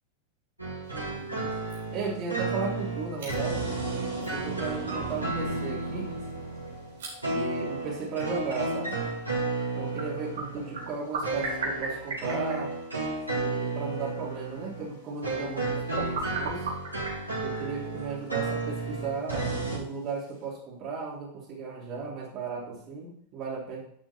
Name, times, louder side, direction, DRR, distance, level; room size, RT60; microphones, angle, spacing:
sound 1, 0.6-19.8, right 3 dB, 85° right, 4.2 m, -33 dB
sound 2, 0.8-20.5, right 3 dB, 60° right, 4.1 m, -42 dB
voice 1, 0.9-1.6 1.9-3.6 4.3-6.2 7.3-9.0 9.8-12.7 13.3-16.7 17.4-23.8, right 4 dB, 35° right, -5 dB, 3.2 m, -35 dB
11.5 x 6.1 x 4.3 m, 0.66 s
figure-of-eight pair, 90°, 0 cm